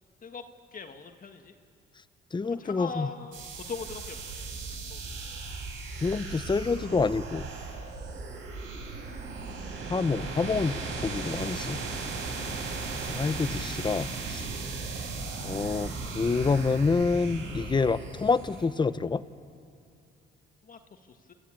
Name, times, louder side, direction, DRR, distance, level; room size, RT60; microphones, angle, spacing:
voice 1, 0.7-1.5 2.4-4.6 4.9-5.2 20.6-21.3, left 5 dB, 45° left, 6 dB, 1.7 m, -41 dB
voice 2, 2.3-3.1 6.0-7.5 9.9-11.8 13.1-14.4 15.4-19.2, left 4 dB, 25° left, 15 dB, 0.8 m, -27 dB
sound 1, 3.3-18.6, right 4 dB, 80° right, 5.4 m, -37 dB
29.0 x 15.0 x 9.1 m, 2.5 s
cardioid pair, 90°, 20 cm